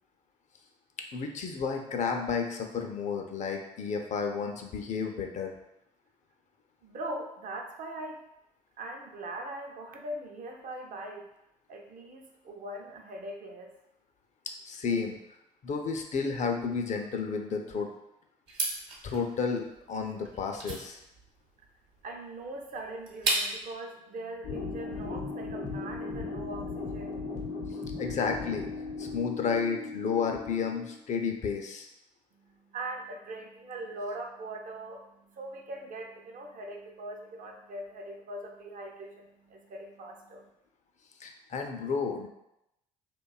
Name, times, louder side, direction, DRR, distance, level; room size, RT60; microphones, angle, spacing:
voice 1, 1.1-5.5 14.7-15.2 15.6-17.9 19.0-21.0 28.0-28.7 29.0-31.9 41.2-42.3, left 5 dB, 40° left, 3 dB, 0.4 m, -32 dB
voice 2, 6.8-8.2 8.8-11.3 11.7-13.7 22.0-28.1 32.4-40.5, right 1 dB, 50° right, 2 dB, 0.5 m, -41 dB
sound 1, 18.5-23.8, right 2 dB, 65° right, 0.9 m, -35 dB
sound 2, 24.4-31.0, left 4 dB, 70° left, 0.7 m, -37 dB
2.5 x 2.2 x 2.3 m, 0.84 s
hypercardioid pair, 55°, 18 cm